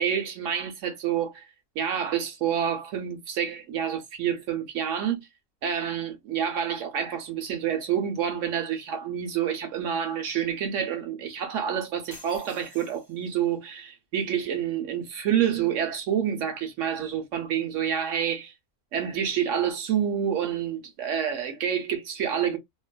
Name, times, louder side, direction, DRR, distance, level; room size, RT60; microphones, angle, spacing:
voice 1, 0.0-1.4 1.8-5.2 5.6-18.5 18.9-22.6, right 8 dB, 65° right, 0.9 m, -28 dB
sound 1, 12.1-13.6, left 2 dB, 20° left, 0.9 m, -49 dB
2.7 x 2.3 x 2.2 m
omnidirectional pair, 1.5 m